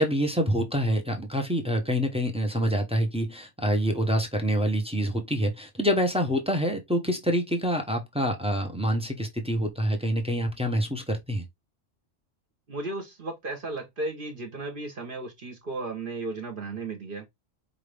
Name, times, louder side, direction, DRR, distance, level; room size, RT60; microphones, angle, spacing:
voice 1, 0.0-11.4, equal, 5° right, 0.6 m, -26 dB
voice 2, 12.7-17.3, right 2 dB, 45° right, 1.1 m, -35 dB
5.0 x 2.6 x 3.3 m
omnidirectional pair, 1.3 m